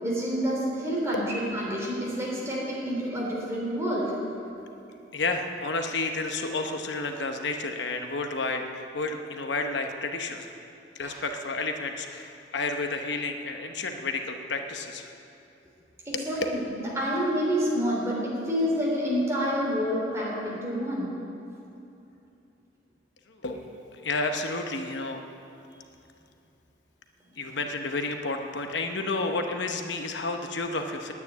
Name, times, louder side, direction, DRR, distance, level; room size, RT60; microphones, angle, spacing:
voice 1, 0.0-4.1 11.0-11.1 16.1-21.1, equal, 15° right, -5 dB, 3.5 m, -28 dB
voice 2, 5.1-10.5 10.9-15.1 16.1-16.3 23.3-25.2 27.4-31.1, left 3 dB, 75° left, 5 dB, 0.9 m, -31 dB
9.8 x 9.7 x 9.4 m, 2.8 s
head